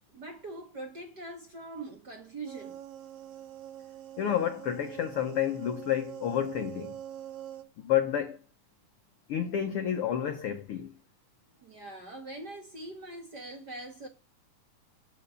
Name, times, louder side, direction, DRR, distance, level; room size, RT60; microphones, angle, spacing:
voice 1, 0.1-2.8 11.6-14.1, right 2 dB, 40° right, 1.6 m, -42 dB
sound 1, 2.5-7.6, right 11 dB, 80° right, 2.6 m, -44 dB
voice 2, 4.2-7.0 7.8-8.4 9.3-10.9, left 10 dB, 80° left, 1.2 m, -30 dB
12.0 x 5.6 x 8.3 m
omnidirectional pair, 3.9 m